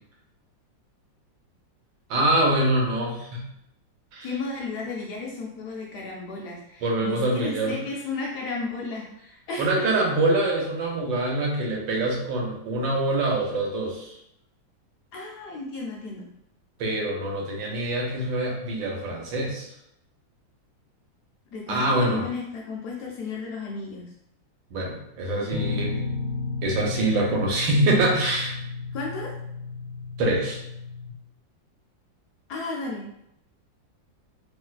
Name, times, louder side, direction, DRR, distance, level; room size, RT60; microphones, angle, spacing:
voice 1, 2.1-3.4 4.1-4.3 6.8-7.8 9.6-14.2 16.8-19.7 21.7-22.2 24.7-26.0 26.6-28.6 30.2-30.6, right 1 dB, 85° right, -1 dB, 1.5 m, -25 dB
voice 2, 4.2-9.9 15.1-16.3 21.5-24.1 28.9-29.3 32.5-33.1, left 3 dB, 70° left, -2 dB, 1.0 m, -33 dB
sound 1, 25.5-31.1, left 3 dB, 60° right, 0.7 m, -32 dB
3.2 x 2.6 x 2.3 m, 0.78 s
omnidirectional pair, 2.0 m